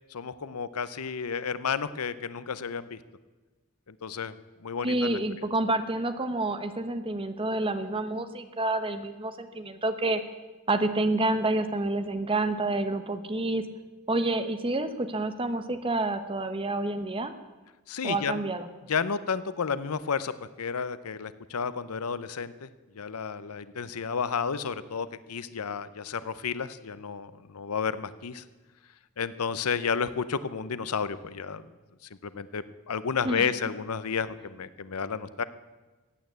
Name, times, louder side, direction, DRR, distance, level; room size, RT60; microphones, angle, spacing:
voice 1, 0.1-3.0 3.9-4.3 4.6-5.2 17.9-18.4 18.9-20.3 20.6-22.7 22.9-28.4 29.2-31.7 32.3-35.4, left 6 dB, 85° left, 15 dB, 0.7 m, -31 dB
voice 2, 4.8-10.2 10.7-13.7 14.1-17.3 18.0-18.7 33.2-33.5, right 2 dB, 25° right, 10 dB, 0.9 m, -28 dB
15.5 x 8.9 x 8.2 m, 1.2 s
head